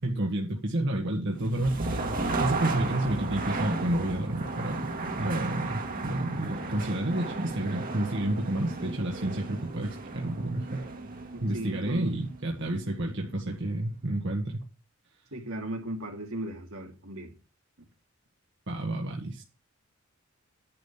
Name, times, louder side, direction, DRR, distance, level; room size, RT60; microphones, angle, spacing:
voice 1, 0.0-4.9 5.2-10.8 11.4-14.6 18.7-19.4, right 1 dB, 60° right, 1.8 m, -30 dB
sound 1, 1.4-13.2, right 3 dB, 40° right, 1.9 m, -34 dB
voice 2, 11.3-12.2 15.3-17.3, right 1 dB, 75° right, 2.9 m, -37 dB
10.5 x 5.2 x 7.4 m
head